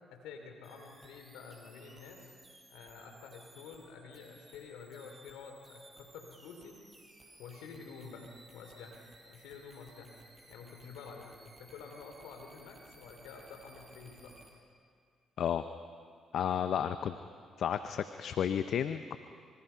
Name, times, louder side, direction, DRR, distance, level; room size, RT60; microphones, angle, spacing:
voice 1, 0.1-2.4 2.7-6.7 7.4-8.3 8.5-9.0 9.3-10.2 10.5-14.3, left 5 dB, 85° left, 4 dB, 3.1 m, -49 dB
sound 1, 0.6-14.5, right 2 dB, 20° right, 5.7 m, -59 dB
voice 2, 16.3-17.2 17.6-19.2, left 9 dB, 65° left, 11 dB, 0.7 m, -32 dB
25.5 x 25.5 x 5.7 m, 2.2 s
supercardioid pair, 50°, 0 cm